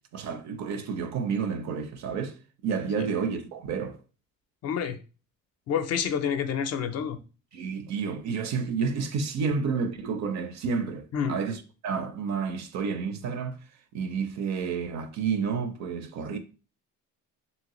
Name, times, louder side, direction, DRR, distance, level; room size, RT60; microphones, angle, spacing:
voice 1, 0.1-2.4 2.6-4.0 7.5-13.6 13.9-16.4, right 5 dB, 55° right, 0.5 m, -30 dB
voice 2, 4.6-5.0 5.7-7.2 11.1-11.4, left 7 dB, 50° left, 0.4 m, -28 dB
3.0 x 2.8 x 2.9 m
cardioid pair, 140°, 33 cm